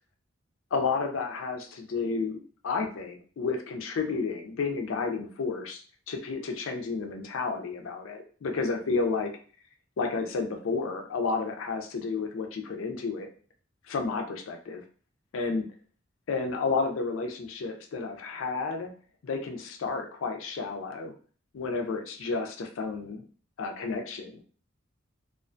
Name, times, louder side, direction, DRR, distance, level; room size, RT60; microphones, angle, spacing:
voice 1, 0.7-9.3 10.0-13.3 13.9-14.8 15.3-15.7 16.3-18.9 19.2-21.1 21.5-23.3 23.6-24.4, left 4 dB, 80° left, 4 dB, 0.4 m, -31 dB
2.4 x 2.1 x 2.5 m, 0.42 s
head